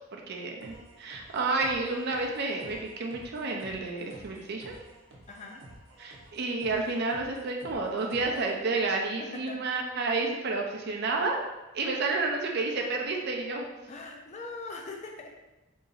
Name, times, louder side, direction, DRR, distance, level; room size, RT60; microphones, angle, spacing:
voice 1, 0.1-4.8 6.0-11.4 11.7-13.7, right 3 dB, 55° right, 1 dB, 0.5 m, -30 dB
sound 1, 0.6-8.6, right 1 dB, 90° right, 0.7 m, -52 dB
voice 2, 5.3-5.6 9.2-9.6 13.9-15.3, left 3 dB, 35° left, 2 dB, 0.4 m, -41 dB
2.9 x 2.6 x 3.9 m, 1.1 s
head